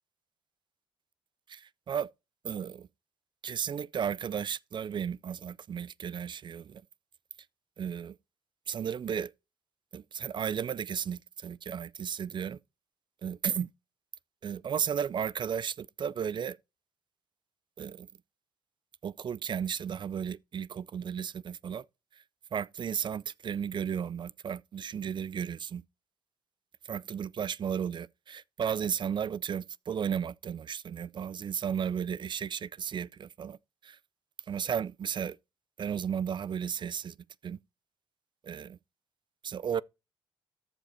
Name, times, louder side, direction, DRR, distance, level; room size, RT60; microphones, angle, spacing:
voice 1, 1.5-2.1 2.4-2.9 3.4-6.8 7.8-8.1 8.7-9.3 9.9-12.6 13.2-13.7 14.4-16.6 17.8-18.1 19.0-21.8 22.5-25.8 26.9-33.6 33.8-34.0 34.5-35.4 35.8-37.2 37.4-37.6 38.4-38.8 39.4-39.8, right 8 dB, 40° right, 0.4 m, -34 dB
14.0 x 5.2 x 4.3 m
hypercardioid pair, 50°, 12 cm